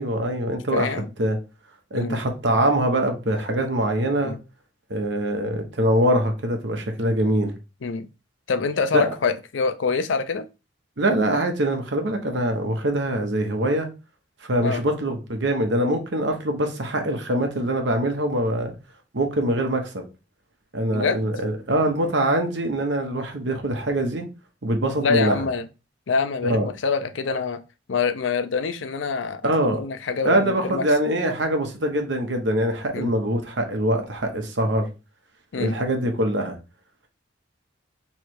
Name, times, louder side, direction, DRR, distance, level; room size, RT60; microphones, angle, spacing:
voice 1, 0.0-1.4 1.9-4.3 4.9-7.5 8.9-9.1 11.0-13.9 14.5-18.7 19.1-20.0 20.7-24.3 24.6-25.4 26.4-26.7 29.4-29.8 30.2-34.9 35.6-36.6, right 1 dB, 70° right, 1.1 m, -23 dB
voice 2, 0.7-1.1 1.9-2.2 4.2-4.4 7.8-8.1 8.5-10.4 14.6-14.8 20.9-21.2 25.0-25.6 26.1-27.6 27.9-30.9 32.9-33.1 35.5-35.8, left 5 dB, 90° left, 0.5 m, -25 dB
3.3 x 3.2 x 4.6 m
head